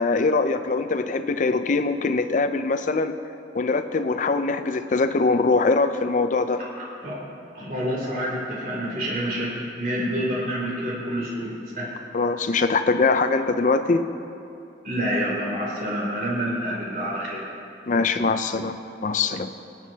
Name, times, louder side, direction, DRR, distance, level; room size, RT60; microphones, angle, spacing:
voice 1, 0.0-3.2 3.5-6.6 12.1-14.1 17.9-18.8 19.0-19.5, left 3 dB, 45° left, 9 dB, 0.5 m, -22 dB
voice 2, 6.6-7.2 7.5-11.9 14.8-17.4, equal, 55° right, -4 dB, 3.1 m, -28 dB
23.5 x 9.0 x 2.8 m, 2.7 s
head